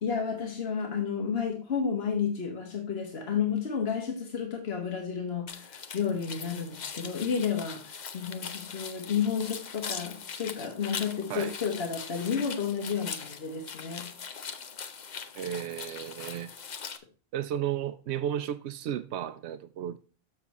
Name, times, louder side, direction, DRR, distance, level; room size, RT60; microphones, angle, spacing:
voice 1, 0.0-14.1, left 6 dB, 70° left, 1.6 m, -31 dB
sound 1, 5.5-17.0, left 6 dB, 50° left, 0.8 m, -41 dB
voice 2, 15.3-16.5 17.3-20.0, right 10 dB, 85° right, 0.8 m, -33 dB
7.1 x 6.7 x 4.0 m
omnidirectional pair, 1.1 m